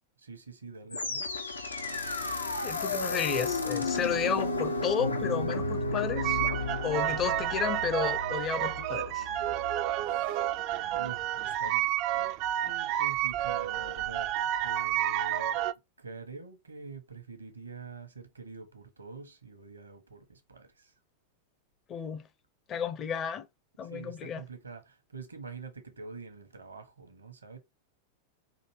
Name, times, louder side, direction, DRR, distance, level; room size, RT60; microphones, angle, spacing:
voice 1, 0.2-1.3 10.0-10.5 10.9-11.8 12.1-15.6 16.0-20.9 23.8-27.6, right 4 dB, 75° right, 1.0 m, -46 dB
sound 1, 0.9-10.1, left 2 dB, 80° left, 0.6 m, -33 dB
voice 2, 2.6-6.4 6.8-9.3 21.9-22.2 22.7-23.5 23.8-24.4, left 7 dB, 30° left, 0.6 m, -32 dB
sound 2, 6.2-15.7, right 13 dB, 40° right, 0.3 m, -30 dB
5.0 x 2.7 x 3.0 m
figure-of-eight pair, 90°, 0 cm